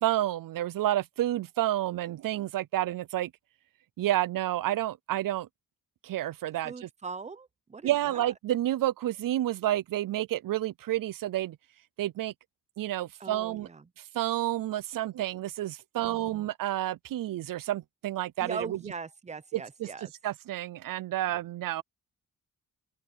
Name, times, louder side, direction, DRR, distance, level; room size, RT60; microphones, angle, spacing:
voice 1, 0.0-3.3 4.0-5.5 6.0-6.9 7.8-11.6 12.0-12.3 12.8-13.7 14.1-18.8 19.5-19.9 20.2-21.8, right 13 dB, 70° right, 0.5 m, -30 dB
voice 2, 6.6-8.3 13.2-13.9 16.0-16.5 18.4-20.1, right 5 dB, 20° right, 0.7 m, -41 dB
open air
wide cardioid pair, 155°, 34 cm